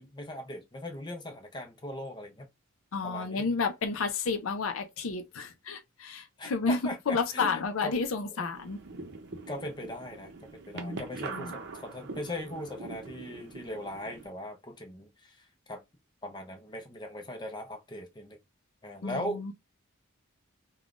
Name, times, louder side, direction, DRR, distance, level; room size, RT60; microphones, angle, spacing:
voice 1, 0.0-2.5 3.0-3.5 6.4-8.0 8.3-8.5 9.5-10.3 10.7-15.8 16.2-18.4 18.8-19.4, left 1 dB, 20° left, 0.6 m, -39 dB
voice 2, 2.9-6.8 7.1-8.8 10.7-11.0 11.3-11.5 19.0-19.5, left 4 dB, 65° left, 0.5 m, -31 dB
sound 1, 8.5-14.3, right 3 dB, 55° right, 0.7 m, -43 dB
3.5 x 2.2 x 2.4 m
head